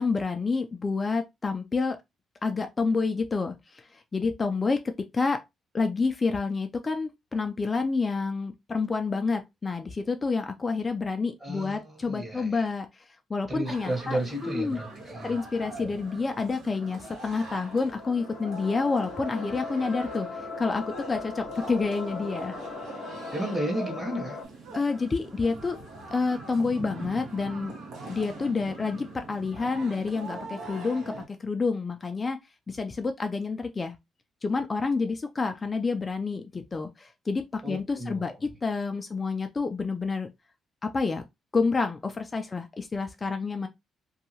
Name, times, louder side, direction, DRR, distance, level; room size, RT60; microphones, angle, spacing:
voice 1, 0.0-2.0 2.4-5.4 5.7-14.8 15.2-22.6 24.7-25.8 26.1-27.7 28.1-32.4 32.7-34.0 34.4-40.3 40.8-41.3 41.5-43.7, left 4 dB, 30° left, 0.4 m, -29 dB
voice 2, 11.4-12.6 13.5-15.4 23.3-24.4 37.6-38.2, right 1 dB, 30° right, 1.2 m, -33 dB
sound 1, 13.6-31.3, right 3 dB, 80° right, 1.2 m, -42 dB
sound 2, 17.0-24.4, left 4 dB, 75° left, 0.8 m, -39 dB
2.7 x 2.3 x 2.8 m
cardioid pair, 90°, 0 cm